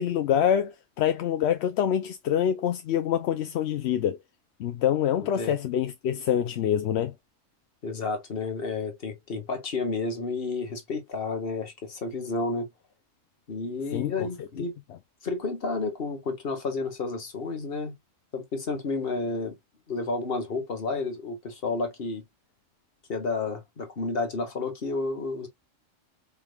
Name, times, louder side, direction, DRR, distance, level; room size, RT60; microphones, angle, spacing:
voice 1, 0.0-4.2 4.6-7.1 13.9-14.1, left 9 dB, 65° left, 0.8 m, -25 dB
voice 2, 5.2-5.5 7.8-12.7 13.5-14.7 15.2-18.0 18.3-19.6 19.9-22.2 23.1-25.5, left 3 dB, 50° left, 1.5 m, -31 dB
5.0 x 3.5 x 2.3 m
omnidirectional pair, 1.3 m